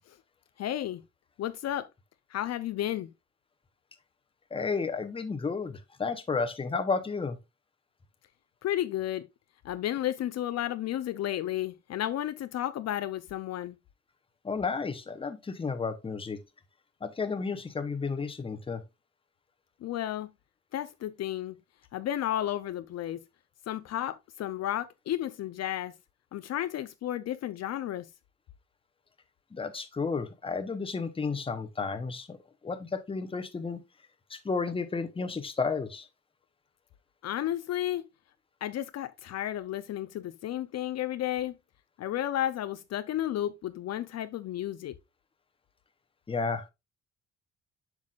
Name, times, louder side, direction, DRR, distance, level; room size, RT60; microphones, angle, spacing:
voice 1, 0.6-1.0 1.4-1.9 2.3-3.1 8.6-9.2 9.6-13.7 19.8-20.3 20.7-21.5 21.9-23.2 23.7-25.9 26.3-28.1 37.2-38.0 38.6-41.5 42.0-44.9, left 12 dB, 60° left, 0.5 m, -32 dB
voice 2, 4.5-7.4 14.4-16.4 17.0-18.8 29.5-32.4 32.6-33.8 34.3-36.1 46.3-46.7, left 4 dB, 20° left, 0.8 m, -32 dB
7.4 x 6.1 x 2.4 m
cardioid pair, 120°, 29 cm